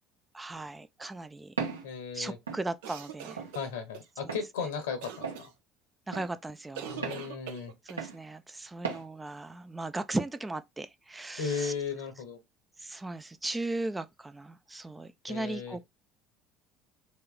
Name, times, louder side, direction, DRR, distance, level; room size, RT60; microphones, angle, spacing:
voice 1, 0.3-1.5 2.1-3.5 6.1-7.1 7.9-11.7 12.8-15.9, right 2 dB, 15° right, 0.4 m, -37 dB
Walk footsteps, 1.6-1.9 2.5-2.6 3.4-3.5 4.3-4.5 5.2-5.4 6.1-6.3 7.0-7.2 8.0-8.2 8.8-9.0, right 5 dB, 85° right, 1.0 m, -35 dB
voice 2, 1.8-2.4 3.5-5.5 6.9-7.7 11.4-12.4 15.3-15.8, left 6 dB, 70° left, 1.0 m, -36 dB
sound 1, 2.8-4.1 5.0-5.5 6.7-8.0, right 8 dB, 70° right, 0.7 m, -43 dB
3.1 x 2.8 x 3.9 m
figure-of-eight pair, 60°, 0 cm